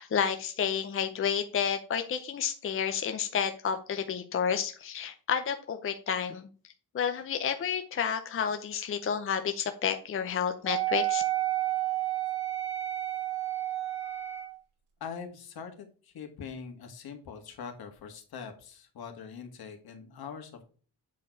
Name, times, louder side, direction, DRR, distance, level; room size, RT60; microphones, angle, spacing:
voice 1, 0.0-6.5 6.9-11.2, left 7 dB, 35° left, 7 dB, 0.6 m, -30 dB
Wind instrument woodwind instrument, 10.7-14.6, right 15 dB, 90° right, 2.7 m, -31 dB
voice 2, 15.0-20.6, left 6 dB, 65° left, 5 dB, 2.0 m, -43 dB
8.3 x 4.5 x 4.6 m, 0.40 s
wide cardioid pair, 175°, 39 cm